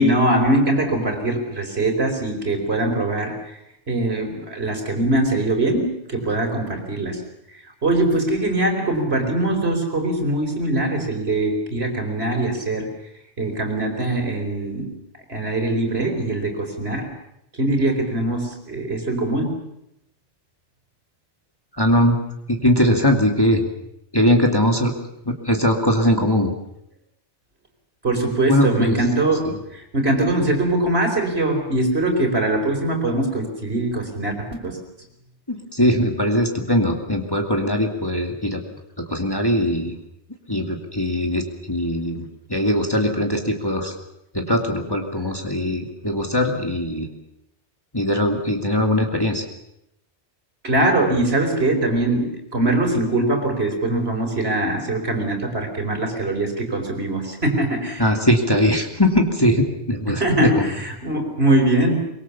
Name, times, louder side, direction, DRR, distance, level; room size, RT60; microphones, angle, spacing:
voice 1, 0.0-3.4 3.9-7.2 7.8-12.9 13.4-14.9 15.3-17.1 17.6-19.5 28.0-34.8 45.2-45.3 50.6-58.1 60.1-62.0, right 1 dB, 60° right, 3 dB, 4.7 m, -22 dB
voice 2, 21.8-22.2 22.5-23.6 24.1-24.9 25.3-26.5 28.5-29.0 29.5-29.6 35.5-38.6 39.0-39.9 40.5-43.9 44.3-47.1 47.9-49.4 58.0-60.7, left 1 dB, 20° left, 2 dB, 2.5 m, -20 dB
24.5 x 22.5 x 7.2 m, 0.79 s
omnidirectional pair, 1.2 m